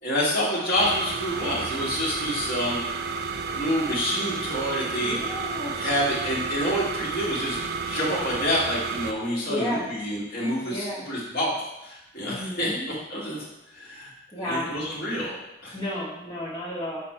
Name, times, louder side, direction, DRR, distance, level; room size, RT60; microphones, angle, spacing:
voice 1, 0.0-2.8 3.5-5.2 5.8-7.6 7.9-11.6 11.8-12.7 13.1-13.4 13.7-15.3 15.6-15.7, equal, 50° left, -6 dB, 2.0 m, -27 dB
sound 1, 0.7-9.1, right 5 dB, 50° right, 0.4 m, -31 dB
voice 2, 5.0-5.8 9.5-9.9 10.6-11.0 12.3-12.9 14.3-14.7 15.7-17.0, left 1 dB, 20° left, -8 dB, 1.1 m, -32 dB
6.1 x 4.2 x 4.4 m, 0.93 s
head